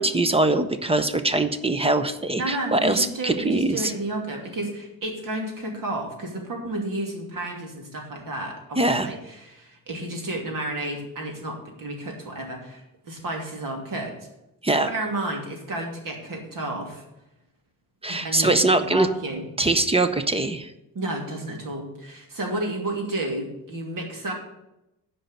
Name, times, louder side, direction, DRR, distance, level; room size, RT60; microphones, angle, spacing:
voice 1, 0.0-3.9 8.8-9.1 14.6-14.9 18.0-19.1 19.6-20.7, right 2 dB, 15° right, 10 dB, 0.5 m, -22 dB
voice 2, 2.3-14.1 14.9-17.0 18.1-19.4 20.9-24.3, right 1 dB, 60° right, 1 dB, 2.7 m, -31 dB
10.0 x 5.3 x 8.1 m, 0.90 s
wide cardioid pair, 175°, 37 cm